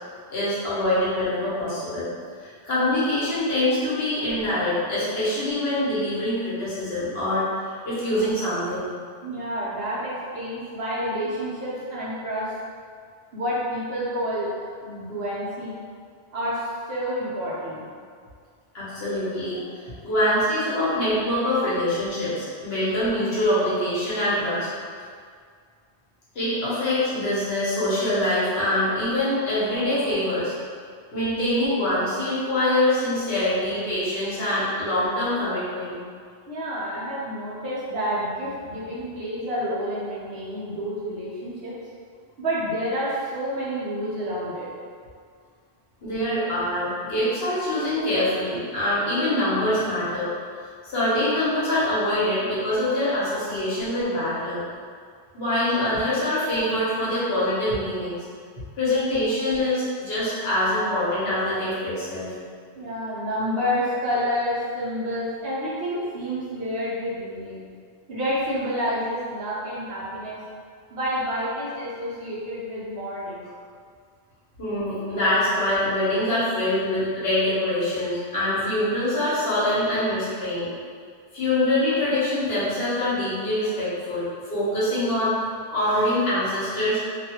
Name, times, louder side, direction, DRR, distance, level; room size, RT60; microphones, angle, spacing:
voice 1, 0.3-2.1 2.4-8.9 18.7-24.7 26.3-30.5 31.1-36.0 46.0-50.3 50.9-54.6 55.3-58.2 58.8-62.3 74.6-80.7 81.3-84.2 84.5-87.0, left 1 dB, 65° left, -11 dB, 1.1 m, -24 dB
voice 2, 9.2-12.5 13.3-15.7 16.3-17.8 36.5-41.7 42.4-44.7 62.8-67.6 68.1-70.4 70.9-73.5, equal, 65° right, -8 dB, 1.0 m, -29 dB
2.6 x 2.3 x 2.8 m, 2.1 s
omnidirectional pair, 1.1 m